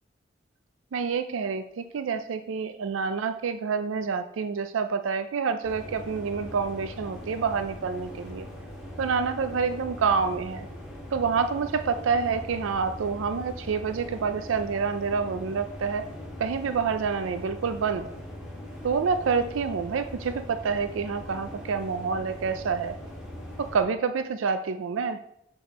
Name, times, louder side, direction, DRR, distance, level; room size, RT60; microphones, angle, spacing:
voice 1, 0.9-8.5 9.0-10.7 11.1-16.0 16.4-18.1 18.8-23.0 23.6-25.2, right 5 dB, 85° right, 9 dB, 0.4 m, -28 dB
sound 1, 5.6-23.8, left 1 dB, 5° right, 1.8 m, -41 dB
6.7 x 6.0 x 4.1 m, 0.80 s
head